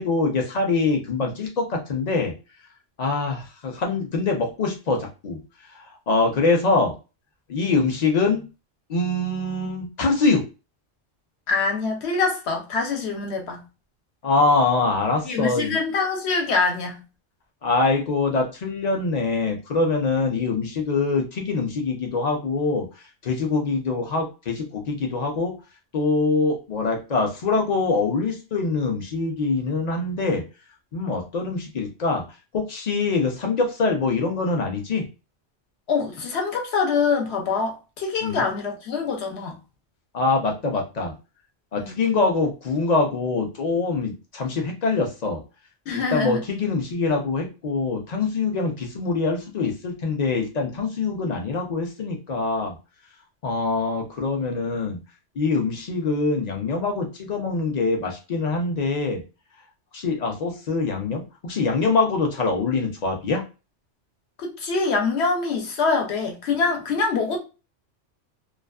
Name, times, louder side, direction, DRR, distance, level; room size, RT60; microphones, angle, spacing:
voice 1, 0.0-2.3 3.0-5.4 6.1-6.9 7.5-8.5 8.9-10.4 14.2-15.8 17.6-22.9 23.2-25.5 25.9-30.4 30.9-32.2 32.5-35.0 38.2-38.4 40.1-41.1 41.7-45.4 45.9-52.8 53.4-55.0 55.4-59.2 59.9-63.4, left 3 dB, 45° left, 0.6 m, -24 dB
voice 2, 11.5-13.6 15.2-17.0 35.9-39.6 41.8-42.0 45.9-46.4 64.4-67.4, left 4 dB, 65° left, 1.0 m, -24 dB
2.4 x 2.3 x 2.3 m
omnidirectional pair, 1.2 m